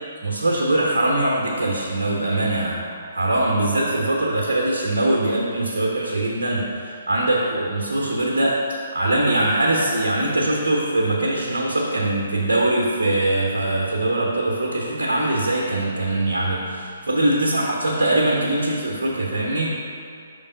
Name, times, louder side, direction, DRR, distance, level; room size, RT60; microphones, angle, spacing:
voice 1, 0.2-2.8 3.1-8.6 8.9-19.8, right 1 dB, 65° right, -4 dB, 0.8 m, -22 dB
5.2 x 3.4 x 5.4 m, 2.4 s
figure-of-eight pair, 130°, 0 cm